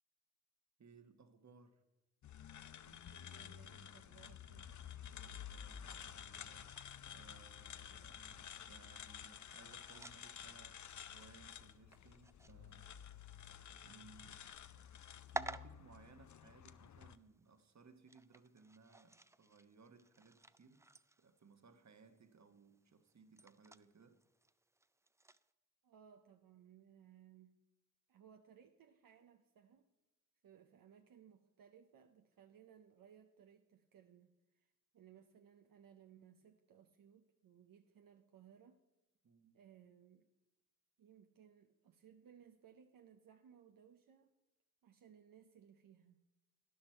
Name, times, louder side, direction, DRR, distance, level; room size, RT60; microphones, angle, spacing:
voice 1, 0.8-1.8 5.1-13.0 13.8-14.4 15.3-20.9 21.2-24.2 39.2-39.5, right 4 dB, 55° right, 1.2 m, -63 dB
sound 1, 2.2-17.2, left 9 dB, 60° left, 0.6 m, -52 dB
voice 2, 2.8-4.7 25.8-27.6 28.1-29.9 30.4-38.8 39.5-40.3 41.0-44.3 44.8-46.2, right 8 dB, 80° right, 0.7 m, -63 dB
sound 2, 6.7-25.5, right 2 dB, 10° right, 0.4 m, -55 dB
12.0 x 10.5 x 4.4 m
cardioid pair, 40°, 33 cm